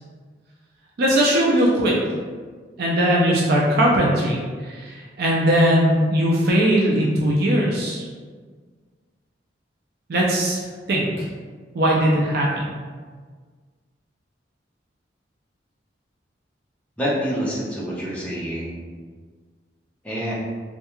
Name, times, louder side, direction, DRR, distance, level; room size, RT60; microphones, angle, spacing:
voice 1, 1.0-1.9 2.8-8.0 10.1-11.3 11.7-12.5, equal, 60° right, -3 dB, 0.4 m, -19 dB
voice 2, 17.0-18.8 20.0-20.3, equal, 10° left, -7 dB, 0.6 m, -27 dB
2.3 x 2.3 x 2.9 m, 1.5 s
head